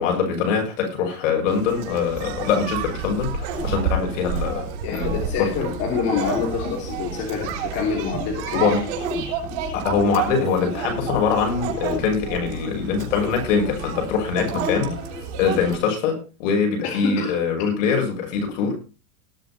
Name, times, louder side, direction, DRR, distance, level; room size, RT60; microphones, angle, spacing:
voice 1, 0.0-5.5 8.5-8.8 9.7-18.8, left 6 dB, 55° left, 3 dB, 6.6 m, -23 dB
sound 1, 1.5-15.8, right 5 dB, 45° right, 7.4 m, -30 dB
voice 2, 4.8-8.7 16.8-17.3, left 6 dB, 30° left, 0 dB, 3.2 m, -26 dB
19.5 x 8.3 x 4.3 m, 0.33 s
supercardioid pair, 160°, 45 cm